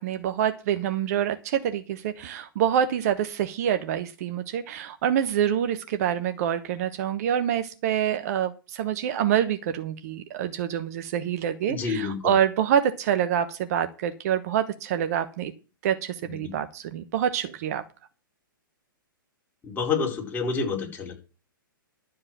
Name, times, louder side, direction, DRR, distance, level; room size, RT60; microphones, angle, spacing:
voice 1, 0.0-15.5 15.8-17.8, right 9 dB, 45° right, 11 dB, 1.1 m, -26 dB
voice 2, 11.7-12.3 16.2-16.5 19.6-21.1, left 5 dB, 15° left, -1 dB, 4.7 m, -28 dB
12.0 x 7.6 x 6.1 m, 0.32 s
figure-of-eight pair, 115°, 12 cm